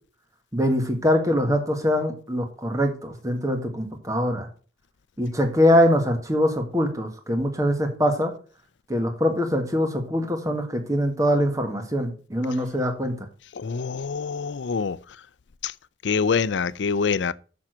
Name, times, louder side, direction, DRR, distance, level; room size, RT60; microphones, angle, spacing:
voice 1, 0.5-4.5 5.2-8.3 8.9-13.3, equal, 20° right, 1.6 m, -23 dB
voice 2, 13.5-15.2 15.6-15.7 16.0-17.3, left 5 dB, 85° left, 0.5 m, -25 dB
7.3 x 6.2 x 6.1 m
head